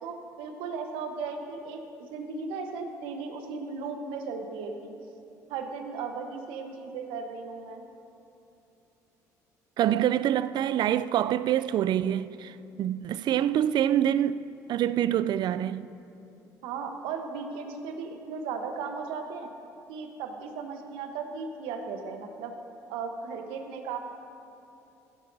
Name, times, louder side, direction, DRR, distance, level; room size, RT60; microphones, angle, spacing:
voice 1, 0.0-4.9 5.5-7.8 16.6-19.5 19.9-22.5 22.9-24.0, right 5 dB, 75° right, 1.0 m, -36 dB
voice 2, 9.8-14.4 14.7-15.9, right 11 dB, 55° right, 0.3 m, -26 dB
16.0 x 11.0 x 2.7 m
hypercardioid pair, 60°, 9 cm